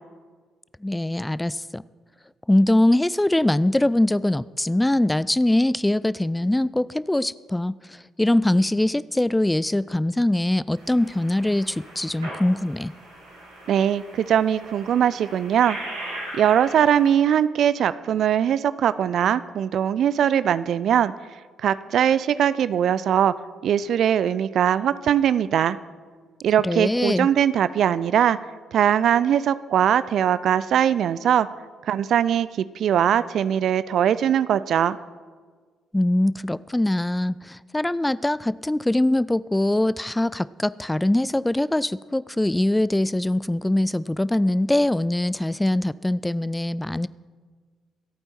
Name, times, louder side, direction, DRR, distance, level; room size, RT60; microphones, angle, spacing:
voice 1, 0.8-1.8 2.5-12.9 26.6-27.3 35.9-47.1, left 1 dB, 10° left, 19 dB, 0.4 m, -22 dB
sound 1, 10.7-17.1, right 1 dB, 90° right, 4.2 m, -39 dB
voice 2, 13.7-15.8 16.3-21.1 21.6-23.3 23.6-25.8 26.4-28.4 28.7-31.5 31.9-35.0, right 9 dB, 60° right, 17 dB, 0.4 m, -21 dB
25.5 x 8.9 x 4.4 m, 1.5 s
hypercardioid pair, 45°, 0 cm